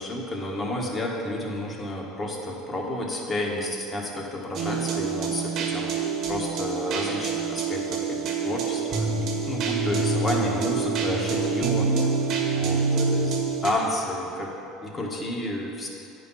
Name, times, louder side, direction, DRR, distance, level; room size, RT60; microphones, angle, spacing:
voice 1, 0.0-5.9 6.3-12.1 12.5-14.5 14.8-15.9, left 1 dB, 25° left, -1 dB, 1.6 m, -31 dB
sound 1, 4.5-13.7, right 4 dB, 50° right, 1.5 m, -26 dB
9.4 x 5.3 x 5.6 m, 2.7 s
supercardioid pair, 100°, 0 cm